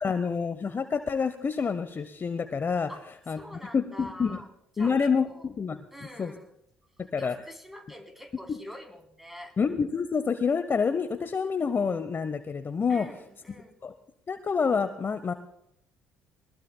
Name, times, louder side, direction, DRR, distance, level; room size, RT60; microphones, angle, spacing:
voice 1, 0.0-2.9 3.3-3.4 3.7-4.4 4.8-5.8 6.2-6.3 7.0-7.4 9.6-13.1 13.8-13.9 14.3-15.3, left 5 dB, 35° left, 11 dB, 0.8 m, -27 dB
voice 2, 3.3-4.5 4.8-5.5 5.9-6.6 7.0-9.6 12.9-13.8, equal, 5° right, 4 dB, 3.4 m, -45 dB
20.5 x 19.5 x 2.2 m, 0.77 s
hypercardioid pair, 55°, 6 cm